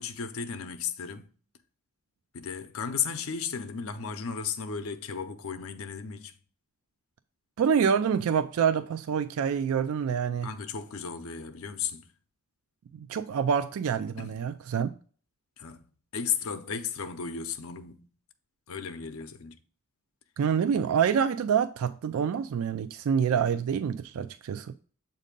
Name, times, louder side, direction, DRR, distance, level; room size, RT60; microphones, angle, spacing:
voice 1, 0.0-1.3 2.3-6.3 10.4-12.1 14.2-14.4 15.6-15.8 16.1-18.1 18.7-19.6, left 6 dB, 80° left, 0.6 m, -34 dB
voice 2, 7.6-10.5 12.9-15.0 20.4-24.7, right 7 dB, 80° right, 0.3 m, -27 dB
7.3 x 2.7 x 5.1 m
head